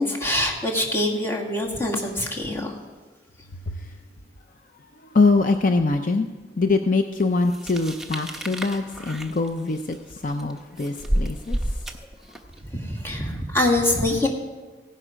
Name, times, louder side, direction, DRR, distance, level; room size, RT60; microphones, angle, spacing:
voice 1, 0.0-2.8 12.7-14.3, left 1 dB, 15° left, -1 dB, 2.1 m, -24 dB
voice 2, 4.9-6.3 6.6-11.9, left 3 dB, 50° left, 6 dB, 0.6 m, -23 dB
sound 1, 7.5-12.6, right 1 dB, ahead, 0.9 m, -30 dB
16.5 x 11.0 x 5.1 m, 1.3 s
head